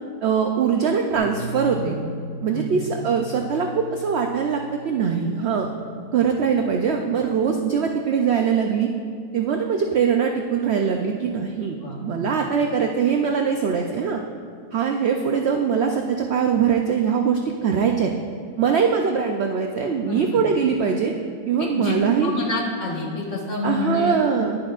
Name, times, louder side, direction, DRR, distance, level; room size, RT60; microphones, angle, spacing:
voice 1, 0.2-2.0 2.4-5.7 6.1-8.9 9.3-14.2 14.7-18.1 18.6-21.1 21.5-22.3 23.6-24.6, right 6 dB, 80° right, 3 dB, 0.5 m, -22 dB
Bass guitar, 1.1-7.4, equal, 40° right, 1.2 m, -38 dB
voice 2, 20.0-20.4 21.6-24.4, left 2 dB, 50° left, -3 dB, 1.6 m, -28 dB
10.5 x 10.5 x 2.4 m, 2.2 s
omnidirectional pair, 1.7 m